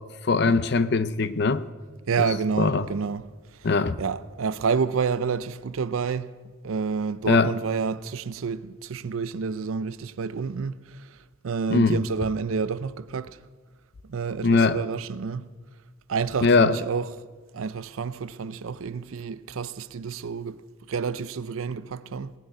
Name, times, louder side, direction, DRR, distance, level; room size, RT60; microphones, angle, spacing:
voice 1, 0.2-1.6 2.6-2.9 3.6-4.0 7.3-7.5 11.7-12.0 14.4-14.8 16.4-16.8, left 4 dB, 55° left, 0.6 m, -21 dB
voice 2, 2.1-3.2 3.6-3.7 4.0-6.3 6.6-11.2 11.4-13.4 14.0-15.5 16.1-17.1 17.5-20.6 20.9-22.3, right 5 dB, 85° right, 0.5 m, -29 dB
19.0 x 6.5 x 9.4 m
head